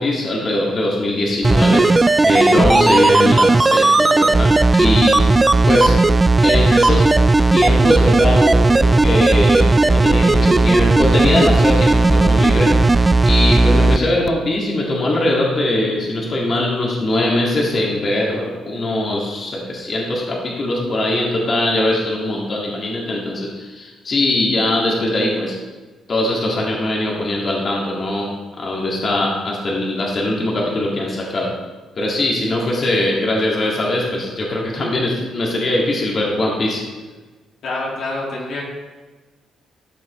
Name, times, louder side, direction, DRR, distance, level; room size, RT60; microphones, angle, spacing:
voice 1, 0.0-5.3 5.7-5.9 6.4-7.2 7.5-25.6 26.1-28.3 28.6-31.5 32.0-36.8, left 1 dB, 45° left, -3 dB, 2.1 m, -21 dB
sound 1, 1.4-14.0 14.3-14.4, right 2 dB, 20° right, 0.3 m, -14 dB
voice 2, 37.6-38.6, left 2 dB, 70° left, -3 dB, 2.3 m, -26 dB
14.0 x 6.3 x 3.2 m, 1.3 s
cardioid pair, 90°, 0 cm